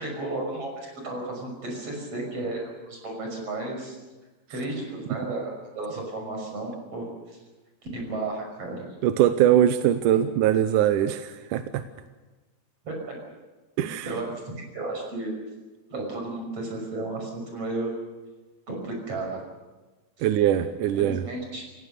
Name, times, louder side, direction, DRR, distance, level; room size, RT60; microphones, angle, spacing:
voice 1, 0.0-4.0 4.5-7.4 7.9-8.8 12.8-13.2 14.1-15.3 15.9-17.9 18.7-19.4 20.2-20.3 20.9-21.6, right 2 dB, 40° right, 1 dB, 6.8 m, -33 dB
voice 2, 9.0-11.8 13.8-14.1 20.2-21.2, right 11 dB, 75° right, 9 dB, 2.2 m, -22 dB
28.5 x 17.0 x 6.8 m, 1.2 s
omnidirectional pair, 4.1 m